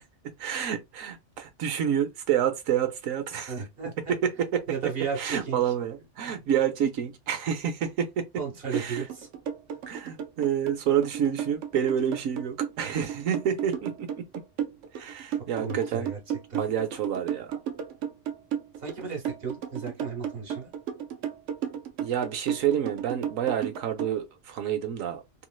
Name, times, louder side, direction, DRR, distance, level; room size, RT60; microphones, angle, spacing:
voice 1, 0.4-3.5 4.2-4.9 5.2-8.3 8.7-9.0 9.9-14.2 14.9-16.1 16.6-17.6 22.0-25.4, right 9 dB, 90° right, 1.1 m, -28 dB
voice 2, 3.5-4.1 4.7-5.6 6.2-6.3 8.4-9.3 15.6-16.2 16.5-16.7 18.8-20.7, right 5 dB, 50° right, 1.2 m, -34 dB
sound 1, 8.7-24.1, right 9 dB, 75° right, 0.9 m, -33 dB
3.1 x 2.9 x 2.3 m
omnidirectional pair, 1.3 m